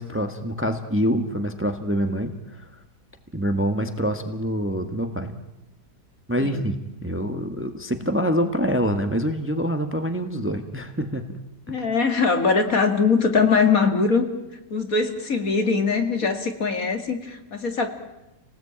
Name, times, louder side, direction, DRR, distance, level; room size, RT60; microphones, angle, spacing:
voice 1, 0.0-2.7 3.3-5.4 6.3-11.4 11.7-11.8, equal, 10° right, 7 dB, 1.5 m, -26 dB
voice 2, 6.4-6.7 11.7-14.3 14.7-17.9, left 4 dB, 55° left, 6 dB, 2.6 m, -22 dB
30.0 x 19.0 x 8.8 m, 0.96 s
omnidirectional pair, 1.8 m